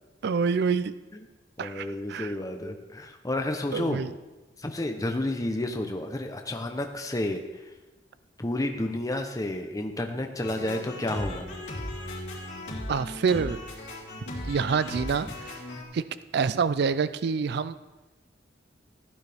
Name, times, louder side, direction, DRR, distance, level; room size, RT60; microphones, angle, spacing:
voice 1, 0.2-0.9 1.6-2.3 3.7-4.1 12.9-13.6 14.4-15.6 15.9-16.0 16.3-17.8, right 5 dB, 65° right, 14 dB, 0.4 m, -27 dB
voice 2, 1.6-4.0 4.6-7.7 8.4-11.6, left 1 dB, 20° left, 4 dB, 0.7 m, -31 dB
sound 1, 10.4-15.8, left 1 dB, 65° left, 3.3 m, -37 dB
15.0 x 9.6 x 3.4 m, 1.1 s
head